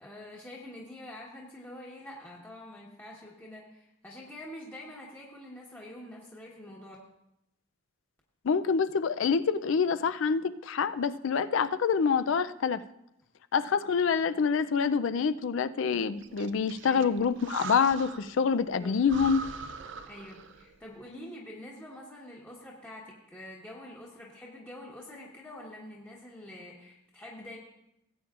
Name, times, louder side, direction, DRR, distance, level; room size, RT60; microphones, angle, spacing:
voice 1, 0.0-7.0 16.9-17.1 18.8-19.0 20.1-27.6, left 1 dB, 10° left, 1.2 m, -46 dB
voice 2, 8.4-12.8 13.5-19.4, left 6 dB, 60° left, 0.4 m, -26 dB
Breathing, 16.2-18.4 18.7-18.8 19.1-20.8, right 4 dB, 55° right, 0.5 m, -42 dB
17.5 x 8.5 x 2.5 m
head